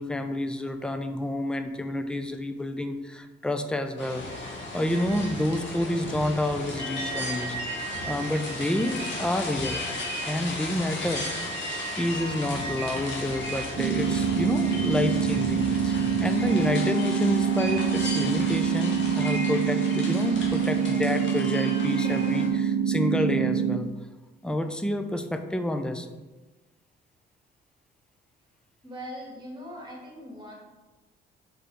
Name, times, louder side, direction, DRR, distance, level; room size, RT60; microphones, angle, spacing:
voice 1, 0.0-4.2 4.7-7.6 8.1-9.8 10.3-11.3 12.0-23.9 24.4-26.1, left 1 dB, 5° left, 7 dB, 0.6 m, -29 dB
sound 1, 4.0-22.5, left 1 dB, 70° left, 2.0 m, -34 dB
sound 2, 13.8-23.8, right 7 dB, 85° right, 0.6 m, -25 dB
voice 2, 28.8-30.5, equal, 20° right, -3 dB, 2.3 m, -40 dB
6.4 x 4.4 x 4.9 m, 1.2 s
cardioid pair, 90°, 20 cm